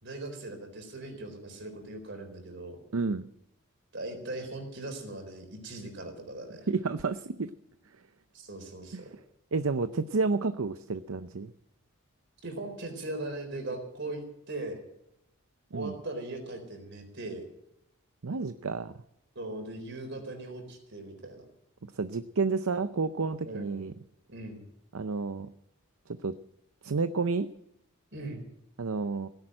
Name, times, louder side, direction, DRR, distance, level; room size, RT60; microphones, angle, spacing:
voice 1, 0.0-2.8 3.9-6.7 8.3-9.1 12.4-14.8 15.7-17.4 19.4-21.5 23.4-23.8 24.3-24.6 28.1-28.5, right 2 dB, 50° right, 6 dB, 4.1 m, -39 dB
voice 2, 2.9-3.3 6.7-7.5 8.9-9.0 9.5-11.5 15.7-15.9 18.2-18.9 22.0-23.9 24.9-25.5 26.1-26.3 26.8-27.5 28.8-29.3, right 4 dB, 70° right, 12 dB, 0.6 m, -30 dB
17.0 x 10.5 x 7.6 m, 0.81 s
head